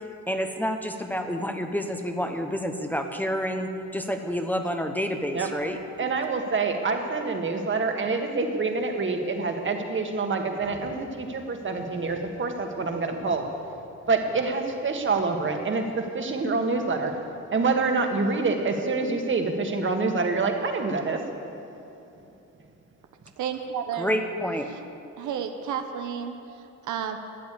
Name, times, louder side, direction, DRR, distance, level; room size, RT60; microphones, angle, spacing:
voice 1, 0.3-5.8 24.0-24.7, equal, 5° left, 5 dB, 1.0 m, -29 dB
voice 2, 6.0-13.4 14.1-17.2 17.5-21.3, right 3 dB, 40° right, 4 dB, 1.8 m, -26 dB
voice 3, 23.4-24.1 25.2-26.4 26.8-27.2, right 8 dB, 75° right, 6 dB, 1.0 m, -31 dB
13.5 x 9.3 x 8.4 m, 2.8 s
cardioid pair, 90°, 30 cm